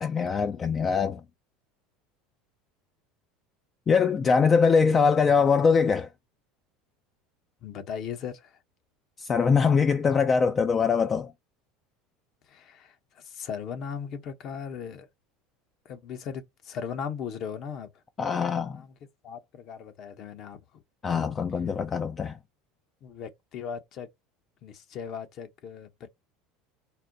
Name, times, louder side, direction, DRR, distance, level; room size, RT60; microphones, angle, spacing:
voice 1, 0.0-1.2 3.9-6.1 9.2-11.3 18.2-18.8 21.0-22.4, left 5 dB, 30° left, 0.4 m, -23 dB
voice 2, 7.6-8.6 12.5-15.1 15.8-17.9 18.5-18.9 19.2-20.8 23.0-24.1 24.6-26.1, left 7 dB, 50° left, 0.8 m, -38 dB
4.3 x 2.1 x 3.8 m
hypercardioid pair, 85°, 0 cm